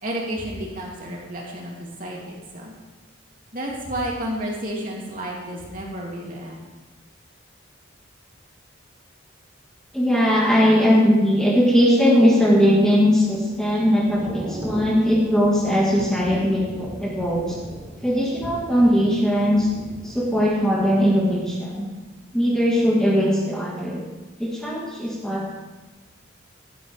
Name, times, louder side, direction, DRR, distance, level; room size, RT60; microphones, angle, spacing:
voice 1, 0.0-2.7 3.5-6.6, right 1 dB, 45° right, -3 dB, 3.0 m, -31 dB
voice 2, 9.9-17.6 18.0-19.7 20.0-21.9 22.3-24.0 24.4-25.6, equal, 5° left, -4 dB, 1.8 m, -19 dB
Thunder / Rain, 12.6-22.3 22.6-22.9, right 1 dB, 15° right, 1.9 m, -39 dB
16.0 x 12.5 x 3.5 m, 1.2 s
head